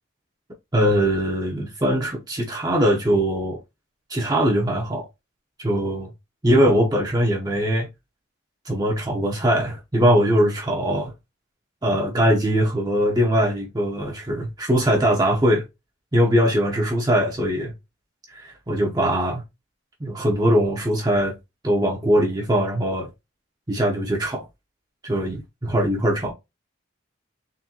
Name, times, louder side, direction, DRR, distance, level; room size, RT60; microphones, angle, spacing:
voice 1, 0.7-3.6 4.1-5.1 5.6-6.1 6.4-7.9 8.6-11.1 11.8-15.6 16.1-17.7 18.3-19.4 20.0-21.3 21.6-23.1 23.7-24.5 25.0-26.3, equal, 20° right, 0.8 m, -21 dB
3.9 x 3.4 x 2.8 m
head